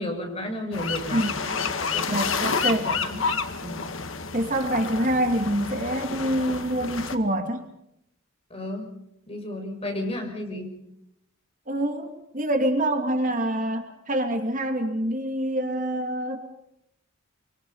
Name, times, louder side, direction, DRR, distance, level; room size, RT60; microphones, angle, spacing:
voice 1, 0.0-1.3 1.9-2.2 2.7-3.2 3.6-3.8 8.5-8.9 9.3-10.7, left 1 dB, 30° left, 3 dB, 6.5 m, -33 dB
sound 1, 0.7-7.2, left 5 dB, 70° left, 2.0 m, -29 dB
voice 2, 2.1-2.9 4.3-7.6 11.7-16.5, right 1 dB, 40° right, 5 dB, 2.6 m, -26 dB
25.5 x 24.5 x 5.6 m, 0.79 s
head